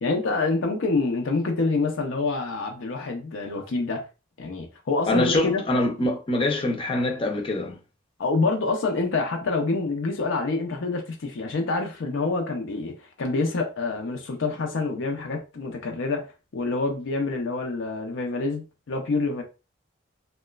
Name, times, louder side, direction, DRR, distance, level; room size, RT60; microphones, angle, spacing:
voice 1, 0.0-4.0 4.4-5.6 8.2-16.3 16.5-19.4, left 3 dB, 80° left, 0.5 m, -27 dB
voice 2, 5.1-7.8, left 1 dB, 25° left, 0.5 m, -24 dB
2.9 x 2.2 x 2.2 m
head